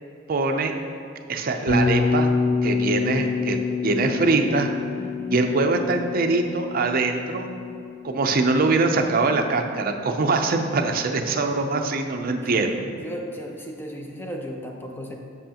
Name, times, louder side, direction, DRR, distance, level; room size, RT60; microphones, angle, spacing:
voice 1, 0.3-0.7 1.3-2.3 2.6-4.7 5.3-7.5 8.0-12.8, right 3 dB, 50° right, 5 dB, 0.5 m, -23 dB
Bass guitar, 1.7-9.7, left 4 dB, 65° left, 1.3 m, -27 dB
voice 2, 5.0-5.4 12.3-15.1, equal, 10° left, 1 dB, 0.6 m, -36 dB
7.7 x 6.2 x 2.9 m, 2.4 s
head